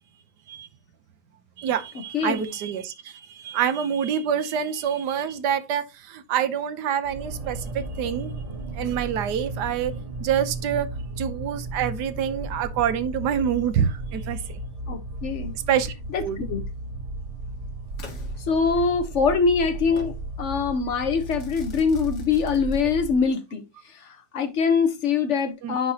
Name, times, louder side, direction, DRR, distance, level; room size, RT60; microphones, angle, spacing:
voice 1, 1.6-8.3 8.7-10.9 11.2-14.6 15.7-16.5 25.6-25.8, right 8 dB, 75° right, 1.4 m, -26 dB
voice 2, 2.1-2.5 14.9-15.5 16.1-16.6 18.5-23.6 23.9-25.9, left 5 dB, 50° left, 1.3 m, -24 dB
sound 1, 7.0-23.3, right 2 dB, 35° right, 0.6 m, -35 dB
Crackle / Fireworks, 18.0-19.1 20.0-20.2 21.2-23.2, left 3 dB, 70° left, 2.3 m, -47 dB
9.8 x 4.6 x 2.9 m
omnidirectional pair, 1.8 m